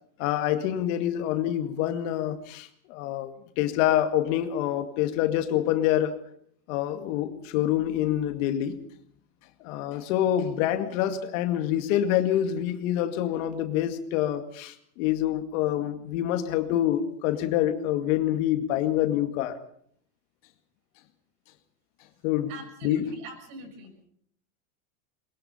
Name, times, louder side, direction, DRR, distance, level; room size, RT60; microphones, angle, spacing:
voice 1, 0.2-6.2 6.7-8.8 9.6-19.6 22.2-22.5 22.8-23.1, left 12 dB, 60° left, 8 dB, 2.3 m, -26 dB
voice 2, 22.5-23.9, right 2 dB, 50° right, 5 dB, 7.1 m, -42 dB
21.5 x 21.5 x 5.7 m, 0.64 s
supercardioid pair, 130°, 43 cm